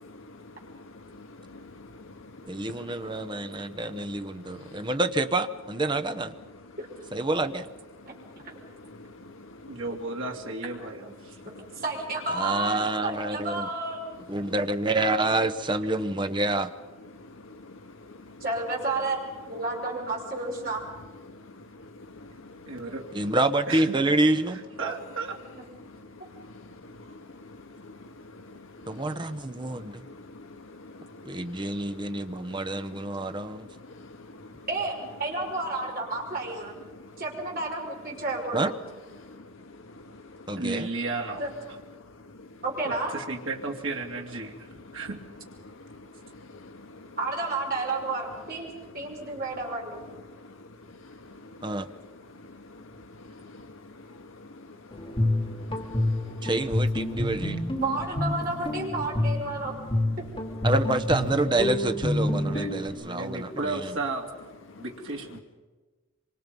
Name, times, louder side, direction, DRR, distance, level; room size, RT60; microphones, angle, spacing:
voice 1, 0.0-4.9 8.1-9.8 11.4-11.5 17.1-18.4 21.3-22.8 25.8-29.3 29.6-32.5 33.2-34.7 36.9-37.1 39.2-40.6 42.4-42.5 44.9-45.0 45.6-47.2 49.2-49.3 50.3-51.8 52.3-56.5 64.7-64.8, left 2 dB, 80° left, 5 dB, 1.1 m, -48 dB
voice 2, 2.5-6.3 7.1-7.7 12.3-13.7 14.3-16.7 23.1-24.6 28.9-30.0 31.2-33.7 38.5-38.7 40.5-40.9 51.6-51.9 56.4-57.6 60.6-63.9, right 2 dB, 20° right, 10 dB, 0.8 m, -27 dB
voice 3, 9.7-11.3 22.7-23.1 23.7-24.0 24.5-25.4 40.5-41.4 42.8-44.7 44.9-45.2 62.3-64.3 64.8-65.4, right 3 dB, 75° right, 1 dB, 2.7 m, -34 dB
voice 4, 11.5-14.0 18.4-19.2 19.5-20.8 25.5-25.6 34.7-36.7 37.2-38.7 41.4-41.5 42.6-43.1 47.2-48.7 48.9-50.0 56.2-56.5 57.8-59.7 62.8-62.9 63.7-63.9, right 2 dB, 45° right, -1 dB, 5.8 m, -31 dB
Guitar, 54.9-62.9, left 1 dB, 25° left, 3.0 m, -28 dB
26.0 x 25.0 x 5.4 m, 1.3 s
head